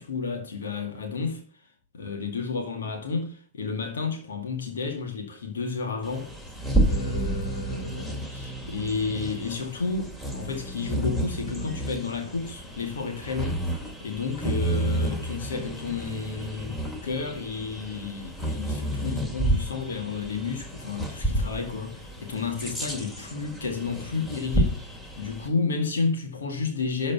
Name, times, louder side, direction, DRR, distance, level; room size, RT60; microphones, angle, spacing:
voice 1, 0.0-1.4 1.9-6.3 6.8-13.6 14.0-24.8 25.2-27.1, left 4 dB, 65° left, 2.1 m, -31 dB
Bird vocalization bird call bird song, 6.0-25.5, right 1 dB, 15° left, 2.5 m, -31 dB
12.0 x 4.2 x 5.7 m
figure-of-eight pair, 90°, 0 cm